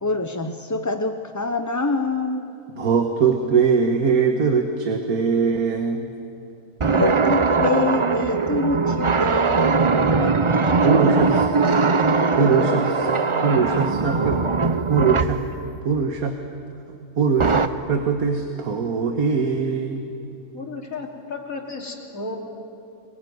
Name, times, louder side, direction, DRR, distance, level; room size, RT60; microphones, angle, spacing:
voice 1, 0.0-2.5 6.8-10.7, left 2 dB, 20° left, 6 dB, 0.5 m, -26 dB
voice 2, 2.8-6.1 10.8-12.0 12.3-15.4 15.8-16.3 17.2-20.0, right 5 dB, 85° right, 5 dB, 1.9 m, -22 dB
sound 1, 6.8-15.4 17.4-17.7, right 4 dB, 35° right, 0.5 m, -20 dB
sound 2, 10.2-10.5 12.6-13.2 13.5-14.3, left 2 dB, 45° left, 4.2 m, -35 dB
voice 3, 20.5-22.4, left 3 dB, 70° left, 1 dB, 3.4 m, -33 dB
25.0 x 22.5 x 9.4 m, 2.8 s
omnidirectional pair, 1.5 m